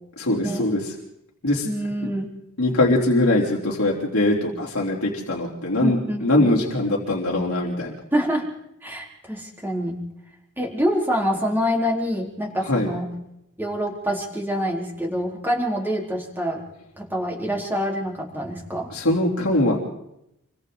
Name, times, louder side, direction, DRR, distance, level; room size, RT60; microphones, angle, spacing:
voice 1, 0.2-0.9 1.4-1.7 2.6-7.9 12.6-12.9 18.9-19.8, left 1 dB, 85° left, -3 dB, 3.8 m, -22 dB
voice 2, 1.6-2.3 5.8-6.5 8.1-8.5 8.8-10.0 10.6-13.1 13.6-16.6 17.0-18.9, equal, 10° right, -1 dB, 4.0 m, -26 dB
28.5 x 24.0 x 4.0 m, 0.82 s
head